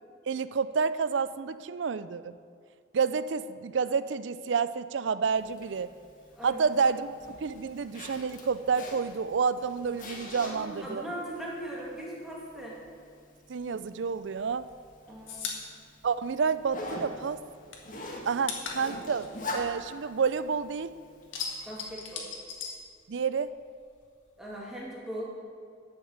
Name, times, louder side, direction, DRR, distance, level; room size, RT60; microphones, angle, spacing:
voice 1, 0.3-2.4 2.9-5.9 6.4-11.0 13.5-14.7 16.0-17.4 18.3-20.9 23.1-23.5, right 5 dB, 70° right, 15 dB, 0.4 m, -29 dB
Zipper (clothing), 5.3-21.8, left 1 dB, 45° left, 1.7 m, -45 dB
voice 2, 10.3-12.8 15.1-15.5 21.7-22.3 24.4-25.4, right 1 dB, ahead, -5 dB, 2.5 m, -39 dB
sound 1, 14.2-17.0 17.3-20.6 20.9-23.5 23.8-24.9, left 5 dB, 85° left, 1.8 m, -40 dB
11.5 x 6.5 x 8.1 m, 2.3 s
head